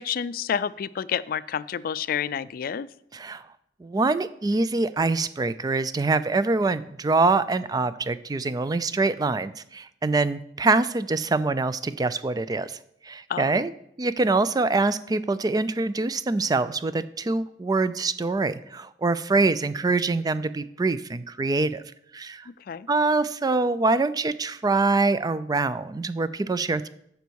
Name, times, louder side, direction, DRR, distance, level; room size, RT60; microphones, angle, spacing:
voice 1, 0.0-2.9 13.3-13.6 22.7-22.9, left 8 dB, 55° left, 17 dB, 0.3 m, -29 dB
voice 2, 3.1-3.4 3.8-12.8 13.0-13.7 14.0-21.8 22.1-22.5 22.9-26.9, right 3 dB, 20° right, 14 dB, 0.4 m, -24 dB
14.0 x 5.3 x 4.6 m, 0.74 s
head